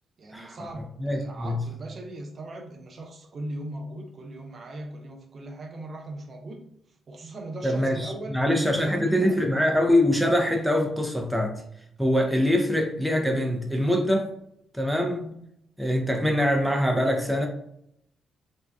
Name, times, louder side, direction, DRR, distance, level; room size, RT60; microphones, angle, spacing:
voice 1, 0.2-6.7 7.1-9.4, right 1 dB, 50° right, 3 dB, 0.5 m, -39 dB
voice 2, 1.0-1.6 7.6-11.5 12.0-14.3 14.7-15.3 15.8-17.5, left 1 dB, 5° right, 2 dB, 0.6 m, -24 dB
2.6 x 2.2 x 3.4 m, 0.73 s
cardioid pair, 75°, 0 cm